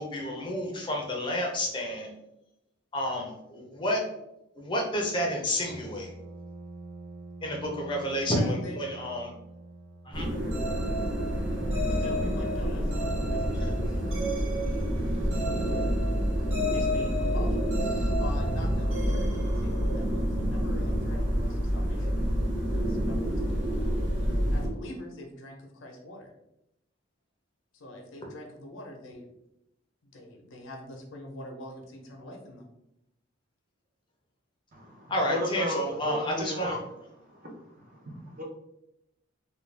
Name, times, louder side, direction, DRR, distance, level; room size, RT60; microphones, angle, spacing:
voice 1, 0.0-2.1 2.9-4.0 4.6-6.1 7.4-9.3 10.0-10.3 35.1-36.8, equal, 25° left, 0 dB, 0.5 m, -30 dB
sound 1, 5.6-18.9, right 3 dB, 10° right, 0.7 m, -49 dB
voice 2, 8.2-8.8 11.8-14.9 15.2-16.0 16.3-23.8 24.5-26.3 27.7-29.3 30.0-32.7, left 1 dB, 80° left, 2 dB, 0.6 m, -45 dB
sound 2, 10.1-24.7, equal, 70° right, 1.2 m, -28 dB
sound 3, 10.5-20.3, left 1 dB, 90° right, 1.1 m, -36 dB
voice 3, 34.7-36.8 37.2-38.4, left 1 dB, 45° right, 0 dB, 0.7 m, -35 dB
2.4 x 2.2 x 3.2 m, 0.84 s
head